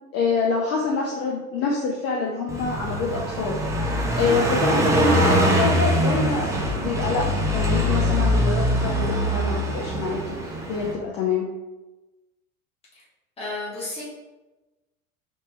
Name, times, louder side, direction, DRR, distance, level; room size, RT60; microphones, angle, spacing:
voice 1, 0.1-11.5, left 4 dB, 35° left, -2 dB, 0.6 m, -26 dB
Car passing by, 2.5-10.9, equal, 10° right, 0.3 m, -23 dB
voice 2, 13.4-14.0, left 2 dB, 15° left, -8 dB, 1.4 m, -32 dB
3.4 x 2.8 x 3.0 m, 1.1 s
hypercardioid pair, 85°, 42 cm